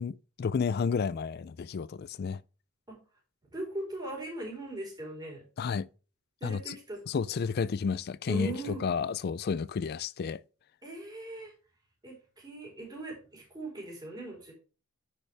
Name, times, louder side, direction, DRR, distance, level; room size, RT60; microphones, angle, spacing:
voice 1, 0.0-2.4 5.6-5.9 6.4-6.8 7.1-10.4, left 5 dB, 45° left, 0.3 m, -31 dB
voice 2, 3.5-5.4 6.4-7.0 8.3-8.8 10.8-11.5 12.0-14.5, right 2 dB, 20° right, 4.3 m, -39 dB
10.0 x 6.8 x 3.4 m
head